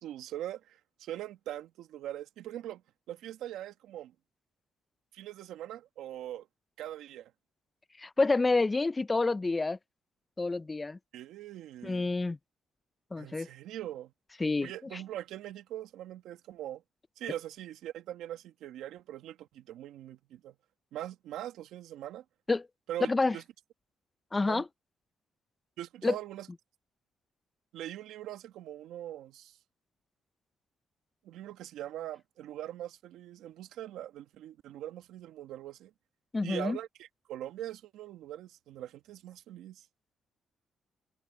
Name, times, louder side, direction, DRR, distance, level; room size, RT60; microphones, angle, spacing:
voice 1, 0.0-2.8 3.1-4.1 5.1-6.5 6.8-7.3 11.1-12.1 13.2-14.1 14.6-16.8 17.2-20.5 20.9-22.2 22.9-23.4 24.4-24.6 25.8-26.5 27.7-29.6 31.2-35.9 36.4-39.9, right 12 dB, 85° right, 1.4 m, -42 dB
voice 2, 8.0-9.8 10.4-11.0 11.8-12.4 13.1-13.5 14.4-14.7 22.5-22.6 23.1-23.4 24.3-24.6 26.0-26.2 36.3-36.8, left 3 dB, 20° left, 0.4 m, -28 dB
cardioid pair, 90°, 0 cm